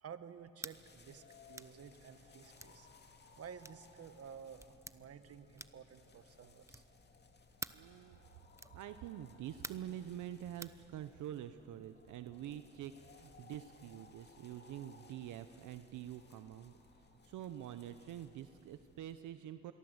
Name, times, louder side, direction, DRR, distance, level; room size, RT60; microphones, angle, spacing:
voice 1, 0.0-2.9 3.4-6.8, right 7 dB, 50° right, 11 dB, 1.4 m, -53 dB
sound 1, 0.6-0.8 1.5-1.8 2.6-2.8 3.6-3.8 4.6-5.0 5.6-5.9 6.6-7.0 7.6-7.9 8.6-8.8 9.6-9.9 10.6-10.8, right 2 dB, 10° right, 0.8 m, -48 dB
sound 2, 0.7-19.2, left 4 dB, 35° left, 2.2 m, -62 dB
voice 2, 7.7-8.2 8.7-19.7, right 11 dB, 80° right, 10 dB, 0.9 m, -47 dB
26.5 x 22.5 x 8.0 m, 2.9 s
cardioid pair, 90°, 30 cm